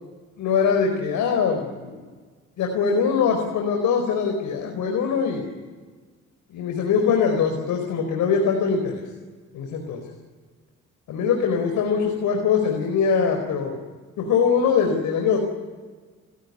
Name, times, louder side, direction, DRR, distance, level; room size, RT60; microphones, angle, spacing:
voice 1, 0.4-2.0 2.6-5.5 6.5-9.0 9.5-10.0 11.1-13.8 14.2-15.4, left 6 dB, 80° left, 3 dB, 4.6 m, -22 dB
29.5 x 17.0 x 9.8 m, 1.4 s
cardioid pair, 90°, 30 cm